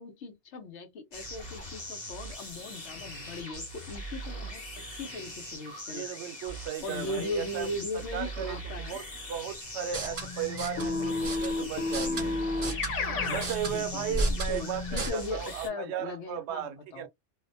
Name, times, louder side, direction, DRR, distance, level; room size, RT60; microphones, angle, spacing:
voice 1, 0.0-6.1 6.8-9.0 13.6-17.1, left 2 dB, 70° left, 1.1 m, -38 dB
sound 1, 1.1-15.7, equal, 40° left, 1.0 m, -41 dB
voice 2, 5.9-12.4 13.3-17.1, right 9 dB, 70° right, 0.8 m, -36 dB
sound 2, 9.8-15.1, equal, 40° right, 0.7 m, -35 dB
Keyboard (musical), 10.8-13.5, left 3 dB, 85° left, 1.3 m, -30 dB
2.6 x 2.1 x 2.5 m
omnidirectional pair, 1.2 m